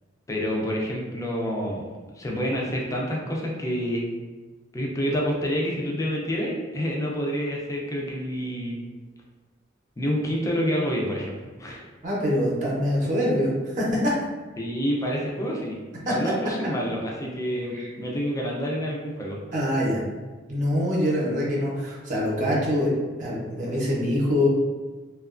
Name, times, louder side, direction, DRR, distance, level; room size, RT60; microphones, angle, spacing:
voice 1, 0.3-1.8 2.1-4.0 4.7-8.8 10.0-11.3 11.6-11.8 14.6-15.8 16.1-19.6, equal, 15° left, -2 dB, 0.4 m, -28 dB
voice 2, 12.0-14.1 16.1-16.2 17.7-17.9 19.5-20.0 20.5-24.5, left 1 dB, 40° right, -4 dB, 0.6 m, -24 dB
2.8 x 2.3 x 2.4 m, 1.3 s
head